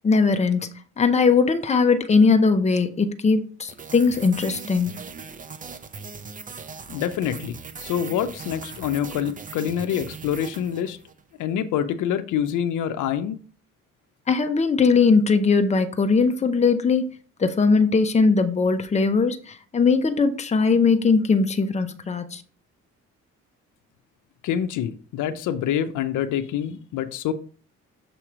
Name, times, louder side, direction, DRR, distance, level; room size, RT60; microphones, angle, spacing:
voice 1, 0.0-5.0 14.3-17.1 17.4-22.4, left 4 dB, 25° left, 0.7 m, -20 dB
sound 1, 3.7-11.2, right 5 dB, 25° right, 0.5 m, -39 dB
voice 2, 6.9-11.0 11.4-13.4 24.4-27.3, left 9 dB, 80° left, 0.6 m, -26 dB
6.9 x 2.9 x 4.9 m
cardioid pair, 90°, 30 cm